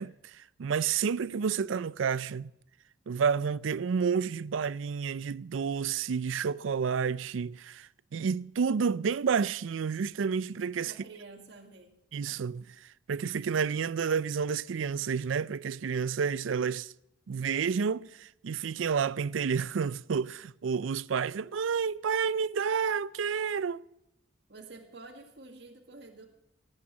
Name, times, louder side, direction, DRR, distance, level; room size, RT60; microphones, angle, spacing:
voice 1, 0.0-2.5 3.1-10.9 12.1-16.9 17.3-23.8, right 6 dB, 85° right, 0.4 m, -30 dB
voice 2, 10.8-12.0 24.5-26.3, right 3 dB, 60° right, 1.9 m, -49 dB
17.5 x 8.9 x 7.2 m
head